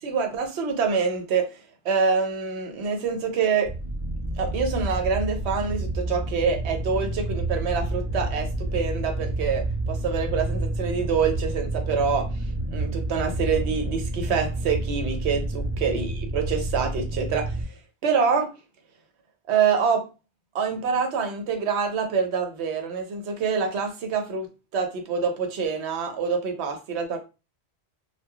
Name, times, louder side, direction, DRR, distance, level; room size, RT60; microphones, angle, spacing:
voice 1, 0.0-3.7 4.4-12.4 12.7-17.6 18.0-18.5 19.5-20.1 20.5-24.5 24.7-27.2, right 5 dB, 80° right, 5 dB, 0.9 m, -26 dB
sound 1, 3.6-17.6, right 2 dB, 40° right, 1.5 m, -29 dB
3.1 x 2.2 x 2.3 m, 0.30 s
omnidirectional pair, 1.1 m